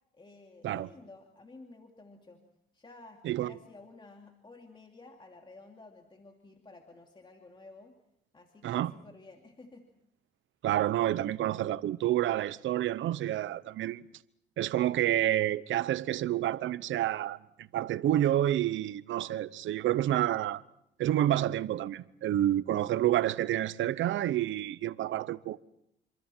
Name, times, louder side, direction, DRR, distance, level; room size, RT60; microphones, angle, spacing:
voice 1, 0.1-2.4 2.7-8.0 8.3-9.9, left 3 dB, 25° left, 2.7 m, -53 dB
voice 2, 10.6-14.0 14.6-20.6 21.0-25.6, right 13 dB, 75° right, 0.9 m, -29 dB
27.5 x 26.5 x 4.5 m
cardioid pair, 90°, 20 cm